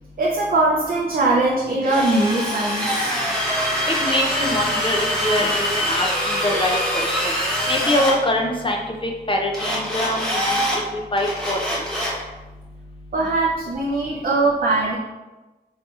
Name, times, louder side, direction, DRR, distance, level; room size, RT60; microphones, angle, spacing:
voice 1, 0.2-3.2 13.1-15.0, right 2 dB, 55° right, -3 dB, 0.4 m, -21 dB
Drill, 1.8-8.1 9.5-10.8 11.2-12.2, equal, 5° left, 0.7 m, -24 dB
voice 2, 3.9-7.3 7.7-10.2 10.5-11.8, left 1 dB, 30° left, 1 dB, 0.4 m, -24 dB
4.0 x 2.6 x 2.3 m, 1.1 s
wide cardioid pair, 135°, 18 cm